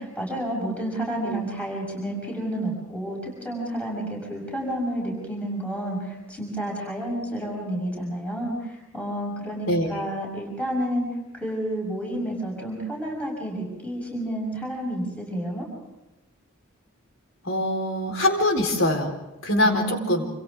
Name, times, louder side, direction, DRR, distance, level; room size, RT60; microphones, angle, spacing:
voice 1, 0.0-15.7 19.6-20.2, right 1 dB, 5° left, -3 dB, 6.4 m, -30 dB
voice 2, 17.4-19.1 19.4-20.2, left 1 dB, 70° left, 4 dB, 4.1 m, -23 dB
28.0 x 27.5 x 3.6 m, 0.98 s
head